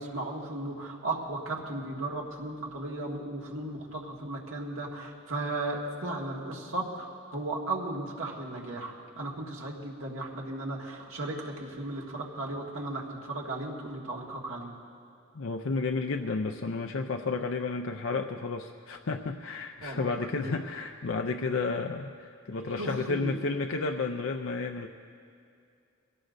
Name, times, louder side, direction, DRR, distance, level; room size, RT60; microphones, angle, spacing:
voice 1, 0.0-14.7 19.8-20.5 22.8-23.6, right 2 dB, 75° right, -2 dB, 1.8 m, -36 dB
voice 2, 15.3-24.9, left 4 dB, 70° left, 4 dB, 0.5 m, -32 dB
23.0 x 17.5 x 2.6 m, 2.4 s
head